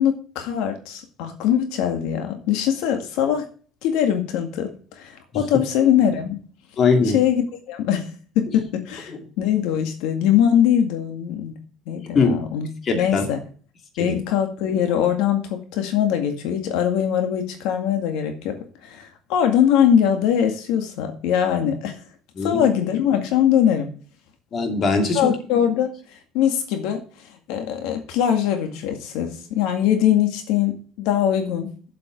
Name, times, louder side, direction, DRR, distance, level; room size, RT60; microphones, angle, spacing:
voice 1, 0.0-3.4 3.8-6.4 7.1-8.1 8.4-11.5 11.9-12.7 12.9-13.4 14.0-18.6 18.8-22.0 22.4-23.9 25.1-27.0 27.3-31.7, left 9 dB, 85° left, 6 dB, 2.0 m, -22 dB
voice 2, 6.8-7.2 9.1-9.2 12.1-12.5 12.8-13.2 14.0-14.2 22.4-22.7 24.5-25.3, left 4 dB, 35° left, 4 dB, 2.7 m, -21 dB
8.5 x 7.8 x 6.3 m, 0.41 s
cardioid pair, 140°, 0 cm